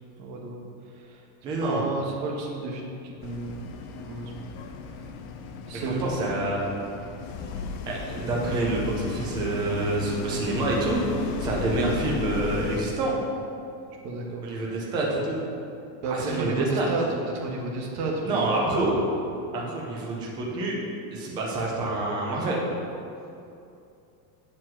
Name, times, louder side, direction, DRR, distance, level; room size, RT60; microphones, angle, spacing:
voice 1, 0.2-0.6 1.0-1.2 1.6-3.7 4.0-4.5 5.7-6.1 8.2-8.3 14.0-14.4 16.0-17.0 17.3-18.9, right 3 dB, 35° right, -1 dB, 1.4 m, -32 dB
voice 2, 1.4-1.8 5.7-6.6 7.8-11.0 11.4-13.2 14.4-15.4 16.1-16.9 18.2-19.0 19.5-20.8 21.1-22.6, right 2 dB, 10° right, -3 dB, 0.4 m, -27 dB
sound 1, 3.2-12.8, left 5 dB, 40° left, 0.6 m, -35 dB
7.8 x 7.3 x 6.0 m, 2.6 s
supercardioid pair, 175°, 50 cm